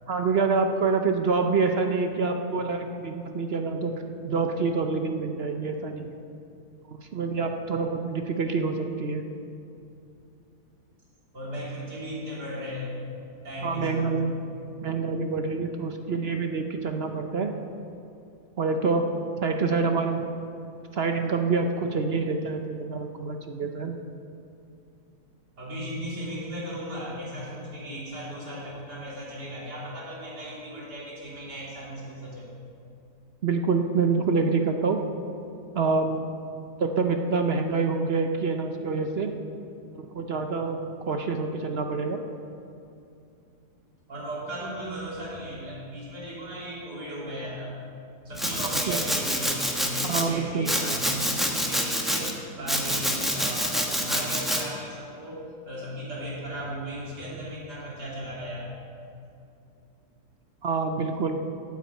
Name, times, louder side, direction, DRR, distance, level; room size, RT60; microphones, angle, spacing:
voice 1, 0.1-3.9 4.2-6.1 6.9-9.3 13.6-14.4 14.8-17.5 18.6-19.0 19.4-20.3 20.9-24.0 33.4-35.0 35.7-36.2 36.8-39.3 39.9-42.2 48.9-49.0 50.0-50.7 60.6-61.4, right 4 dB, 55° right, 5 dB, 0.8 m, -26 dB
voice 2, 11.3-12.9 13.4-14.1 25.6-32.5 44.1-47.7 48.3-58.7, equal, 85° right, -6 dB, 3.7 m, -36 dB
Domestic sounds home sounds, 48.4-50.2 50.6-52.3 52.7-54.6, equal, ahead, 0.9 m, -27 dB
9.5 x 8.4 x 8.4 m, 2.6 s
omnidirectional pair, 1.7 m